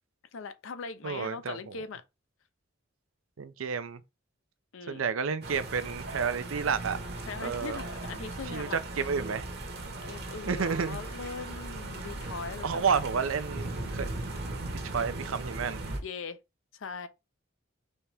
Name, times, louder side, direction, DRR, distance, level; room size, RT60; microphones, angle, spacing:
voice 1, 0.3-2.0 4.7-5.0 7.2-8.8 10.0-13.0 16.0-16.4 16.7-17.1, left 4 dB, 75° left, 0.6 m, -40 dB
voice 2, 1.0-1.8 3.4-4.0 4.9-7.0 7.4-7.8 8.5-9.4 10.4-11.0 12.6-14.1 14.8-15.8, right 6 dB, 85° right, 0.5 m, -31 dB
sound 1, 5.4-16.0, right 2 dB, 50° right, 1.0 m, -38 dB
4.2 x 3.4 x 3.4 m
head